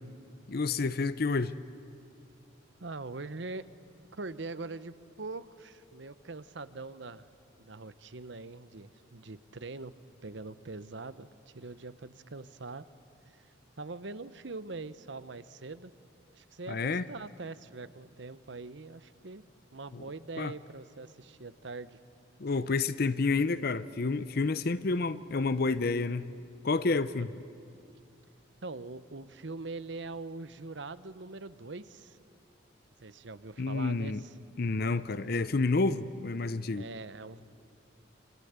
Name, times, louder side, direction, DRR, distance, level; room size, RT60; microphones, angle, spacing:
voice 1, 0.5-1.5 16.7-17.0 19.9-20.1 20.4-20.5 22.4-26.3 26.6-27.3 33.6-34.2 34.6-36.9, left 3 dB, 50° left, 14 dB, 0.6 m, -29 dB
voice 2, 2.8-3.6 4.1-7.3 7.6-9.9 10.2-11.3 11.5-12.8 13.8-15.9 16.4-19.4 19.7-22.0 27.2-27.4 28.6-32.2 33.0-34.3 36.7-37.4, right 3 dB, 65° right, 15 dB, 0.9 m, -42 dB
27.5 x 26.0 x 8.2 m, 2.5 s
head